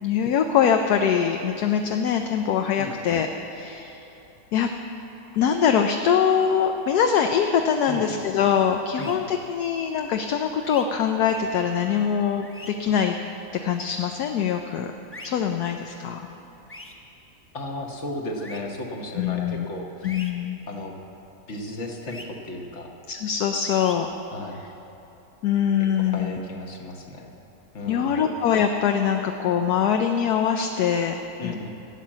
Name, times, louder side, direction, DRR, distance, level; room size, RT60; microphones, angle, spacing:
voice 1, 0.0-4.0 4.5-4.7 5.3-13.2 13.6-14.9 15.2-16.3 19.2-19.6 20.0-20.6 23.1-24.1 25.4-26.4 27.9-31.5, left 8 dB, 70° left, 5 dB, 1.1 m, -23 dB
sound 1, 9.0-9.2 10.6-10.8 12.4-12.7 15.1-15.3 16.7-16.9 18.4-18.6 20.0-20.3 22.1-22.3 23.6-23.9, left 2 dB, 15° left, 0.5 m, -41 dB
voice 2, 17.5-20.1 20.7-20.9 21.5-22.9 24.3-24.6 25.8-27.3 27.7-28.2 31.4-31.7, left 2 dB, 45° left, 1 dB, 1.4 m, -35 dB
14.0 x 8.5 x 7.4 m, 2.9 s
omnidirectional pair, 1.9 m